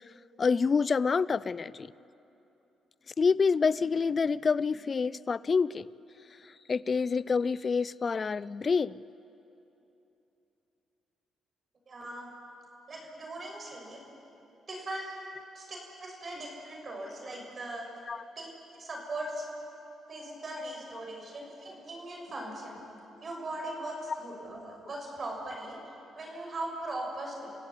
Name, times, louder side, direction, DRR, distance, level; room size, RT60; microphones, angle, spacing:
voice 1, 0.4-1.9 3.2-5.9 6.7-9.0 18.1-18.2, left 5 dB, 40° left, 20 dB, 0.5 m, -27 dB
voice 2, 11.9-12.3 12.9-14.0 14.7-15.2 15.5-17.9 18.4-18.5 18.8-19.5 20.1-22.8 23.2-25.8 26.1-27.5, right 1 dB, 40° right, 0 dB, 6.3 m, -39 dB
29.0 x 16.5 x 8.5 m, 2.9 s
cardioid pair, 90°, 0 cm